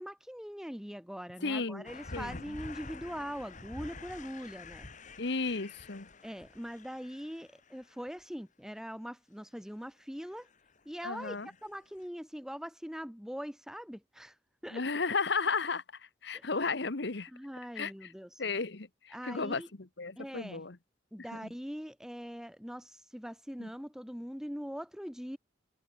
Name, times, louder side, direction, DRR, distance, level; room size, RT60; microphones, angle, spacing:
voice 1, 0.0-4.9 6.2-10.5 10.8-14.4 14.6-14.9 16.3-16.5 17.3-18.3 19.1-19.7 20.2-20.6 21.1-25.4, equal, 5° right, 2.9 m, -42 dB
voice 2, 1.4-2.6 5.2-6.1 11.0-11.5 14.7-15.8 16.2-17.3 17.7-18.1 18.4-19.6 20.0-20.8 23.6-23.7, left 4 dB, 65° left, 1.2 m, -34 dB
sound 1, 1.8-8.2 10.3-10.8 11.2-11.8 12.0-12.1, left 3 dB, 40° left, 1.9 m, -48 dB
head